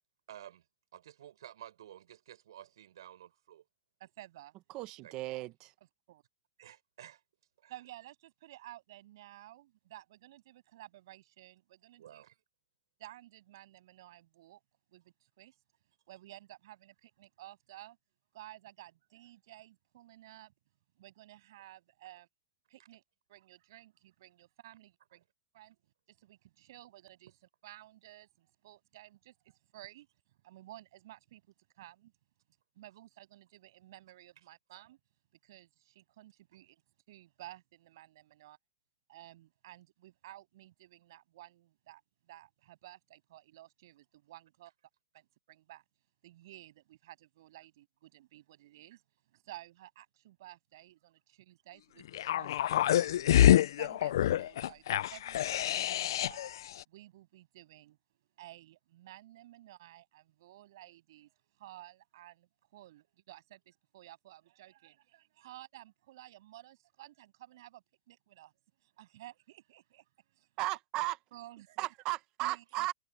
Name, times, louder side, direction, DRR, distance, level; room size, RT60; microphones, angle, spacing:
voice 1, 0.3-0.6 0.9-3.6 5.0-5.3 6.6-7.2 7.6-7.7 12.0-12.4 54.6-54.7 65.4-65.5, right 11 dB, 75° right, 6.4 m, -52 dB
voice 2, 4.0-4.5 6.1-6.2 7.7-12.2 13.0-14.6 14.9-15.5 16.1-18.0 18.3-20.5 21.0-22.3 22.7-23.0 23.3-25.2 25.5-25.8 26.1-27.3 27.6-30.1 30.4-31.4 31.7-32.1 32.8-35.0 35.4-36.8 37.1-38.6 39.1-42.0 42.3-44.7 45.1-45.8 46.2-49.0 49.3-53.1 53.5-54.8 55.1-56.5 56.9-58.0 58.4-61.3 61.6-68.5 68.8-70.0 70.3-70.5 71.3-71.9 72.4-72.9, right 15 dB, 60° right, 7.7 m, -54 dB
voice 3, 4.7-5.7 70.6-71.2 71.8-72.9, right 18 dB, 35° right, 1.1 m, -35 dB
sound 1, 52.1-56.5 56.8-56.9, left 12 dB, 70° left, 0.4 m, -26 dB
supercardioid pair, 155°, 2 cm